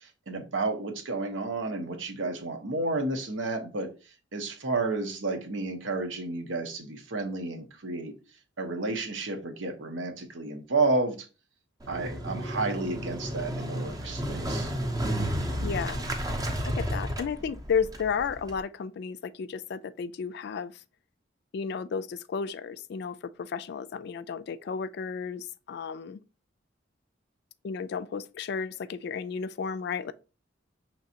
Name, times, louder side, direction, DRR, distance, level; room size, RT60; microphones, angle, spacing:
voice 1, 0.0-3.9 4.3-8.1 8.6-11.3 11.9-14.7, right 3 dB, 85° right, 1.0 m, -31 dB
Motorcycle, 11.8-18.6, equal, 20° right, 0.6 m, -32 dB
voice 2, 15.6-16.0 16.6-20.8 21.5-26.2 27.6-30.1, left 6 dB, 60° left, 0.3 m, -33 dB
6.0 x 3.1 x 2.8 m
head